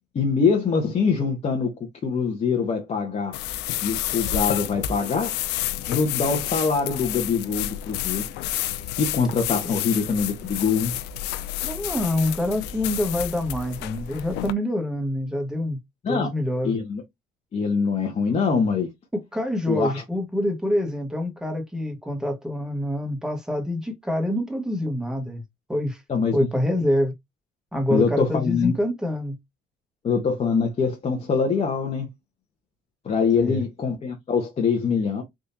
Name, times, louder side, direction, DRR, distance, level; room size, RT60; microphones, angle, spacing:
voice 1, 0.1-1.7 2.0-3.3 3.8-5.3 5.9-8.2 9.0-10.9 16.0-16.3 16.6-17.0 17.5-18.9 19.7-20.0 26.1-26.4 27.9-28.7 30.0-32.1 33.0-35.2, left 5 dB, 40° left, 0.9 m, -23 dB
sound 1, 3.3-14.5, left 12 dB, 90° left, 0.4 m, -30 dB
voice 2, 11.6-15.8 16.1-16.7 18.3-18.4 19.1-25.4 25.7-26.0 26.3-27.1 27.7-29.4 33.3-33.6, left 1 dB, 5° right, 1.3 m, -26 dB
3.6 x 2.7 x 2.7 m
cardioid pair, 110°, 17 cm